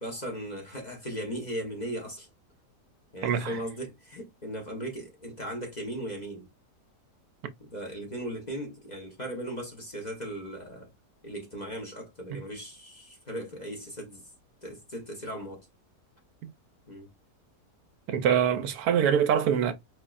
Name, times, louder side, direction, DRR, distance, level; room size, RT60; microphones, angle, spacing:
voice 1, 0.0-2.3 3.1-6.5 7.6-10.9 11.2-14.3 14.6-15.7 16.9-17.1, right 1 dB, 30° left, 1.1 m, -37 dB
voice 2, 3.2-3.6 7.4-7.5 18.1-19.7, right 8 dB, 75° right, 1.1 m, -24 dB
4.7 x 2.9 x 2.4 m
omnidirectional pair, 1.7 m